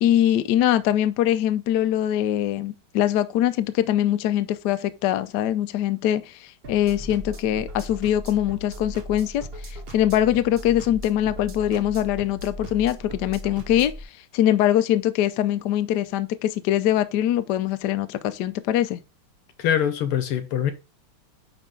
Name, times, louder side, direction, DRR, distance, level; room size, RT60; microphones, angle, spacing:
voice 1, 0.0-13.9 14.3-19.0, left 11 dB, 70° left, 1.0 m, -23 dB
sound 1, 6.6-14.0, equal, 50° right, 0.7 m, -38 dB
voice 2, 19.6-20.7, left 9 dB, 90° left, 1.8 m, -23 dB
10.0 x 3.4 x 3.8 m
omnidirectional pair, 2.4 m